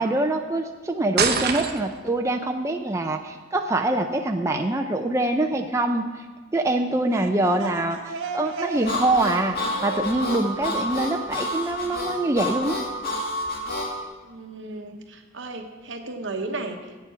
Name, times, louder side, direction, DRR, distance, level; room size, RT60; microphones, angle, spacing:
voice 1, 0.0-6.2 6.5-12.8, right 2 dB, 15° right, 4 dB, 0.4 m, -24 dB
sound 1, 1.2-2.1, right 6 dB, 55° right, 0.8 m, -24 dB
sound 2, 6.9-11.6, right 3 dB, 90° right, 0.7 m, -37 dB
Harmonica, 8.8-13.9, left 2 dB, 55° left, 1.8 m, -29 dB
voice 2, 14.2-16.8, right 2 dB, 70° right, 4 dB, 1.1 m, -34 dB
8.3 x 6.9 x 7.0 m, 1.4 s
head